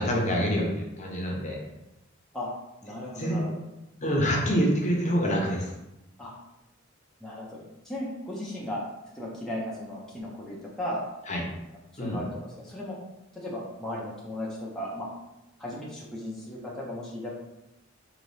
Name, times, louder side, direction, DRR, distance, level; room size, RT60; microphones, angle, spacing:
voice 1, 0.0-1.6 3.2-3.4 4.0-5.7 11.3-11.4 12.0-12.2, equal, 35° left, -1 dB, 0.8 m, -26 dB
voice 2, 2.8-3.6 6.2-6.3 7.2-8.8 9.1-11.0 12.0-13.0 13.3-15.1 15.6-17.3, left 1 dB, ahead, -6 dB, 0.6 m, -36 dB
4.0 x 2.8 x 3.3 m, 0.95 s
head